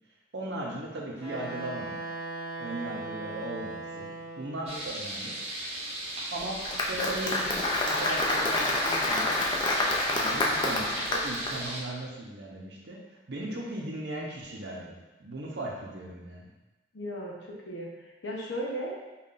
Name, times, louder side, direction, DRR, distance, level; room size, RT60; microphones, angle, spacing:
voice 1, 0.3-2.1 2.6-5.4 6.3-9.3 10.1-16.4, right 1 dB, 70° right, -2 dB, 0.7 m, -37 dB
Wind instrument woodwind instrument, 1.2-4.7, right 2 dB, ahead, 1.4 m, -38 dB
sound 1, 4.7-11.8, right 1 dB, 35° right, 0.6 m, -37 dB
Applause, 6.4-11.5, left 2 dB, 25° left, 0.4 m, -28 dB
voice 2, 16.9-18.9, equal, 80° left, -3 dB, 0.8 m, -36 dB
5.4 x 2.4 x 2.5 m, 1.1 s
head